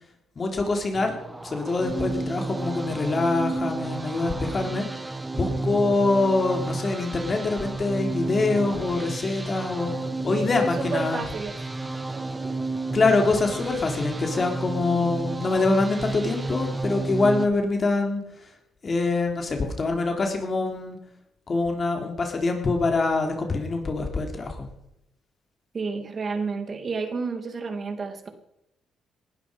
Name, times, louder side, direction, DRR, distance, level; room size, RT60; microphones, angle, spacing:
voice 1, 0.4-1.1 1.4-4.9 5.4-9.9 10.2-11.2 12.9-18.2 18.8-21.0 21.5-24.7, left 3 dB, 35° left, 4 dB, 3.6 m, -24 dB
sound 1, 0.9-17.5, right 2 dB, 15° right, 1.3 m, -31 dB
voice 2, 10.3-11.6 12.1-12.5 25.7-28.3, right 4 dB, 40° right, 7 dB, 2.7 m, -31 dB
20.0 x 12.0 x 5.3 m, 0.84 s
cardioid pair, 90°, 0 cm